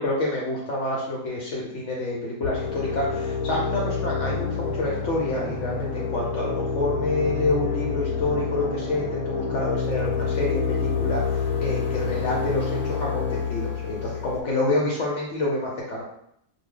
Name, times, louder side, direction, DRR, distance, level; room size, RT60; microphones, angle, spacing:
voice 1, 0.0-16.0, left 2 dB, 65° left, -3 dB, 0.7 m, -28 dB
sound 1, 2.4-14.4, left 5 dB, 80° left, 1.1 m, -28 dB
2.6 x 2.1 x 3.6 m, 0.74 s
omnidirectional pair, 1.7 m